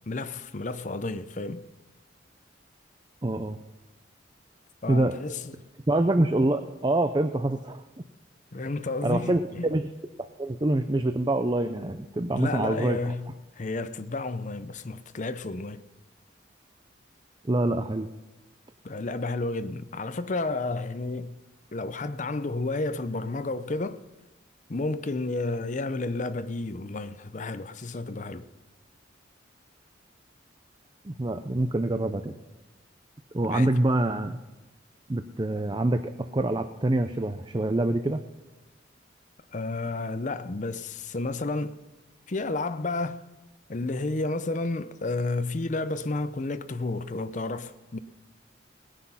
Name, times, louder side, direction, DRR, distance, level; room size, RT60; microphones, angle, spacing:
voice 1, 0.1-1.6 4.8-5.6 8.5-9.7 12.3-15.8 18.8-21.4 21.7-24.0 24.7-28.5 33.5-33.8 39.5-41.8 42.3-43.2 43.7-48.0, left 2 dB, 40° left, 0.6 m, -31 dB
voice 2, 3.2-3.6 4.9-5.2 5.9-7.8 9.0-9.4 9.7-9.9 10.2-13.0 17.5-18.1 31.0-32.3 33.3-34.4 35.1-38.2, right 2 dB, 25° right, 0.5 m, -25 dB
19.0 x 10.0 x 5.6 m
head